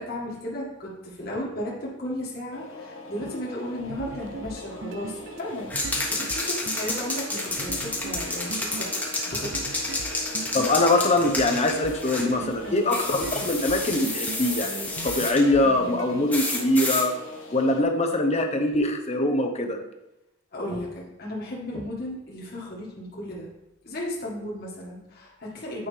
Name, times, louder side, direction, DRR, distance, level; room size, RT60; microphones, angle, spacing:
voice 1, 0.0-8.9 9.3-9.6 12.6-12.8 15.6-16.2 20.5-23.5 23.8-25.9, left 1 dB, 50° left, -5 dB, 1.7 m, -35 dB
sound 1, 2.5-17.8, left 3 dB, 70° left, 1.0 m, -42 dB
sound 2, 3.8-16.7, right 4 dB, 60° right, 0.5 m, -40 dB
sound 3, 5.7-12.3 12.9-15.4 16.3-17.1, left 2 dB, 10° left, 1.2 m, -30 dB
voice 2, 10.5-17.1 17.5-19.8, left 2 dB, 30° left, 4 dB, 0.8 m, -23 dB
8.9 x 5.2 x 3.3 m, 0.95 s
head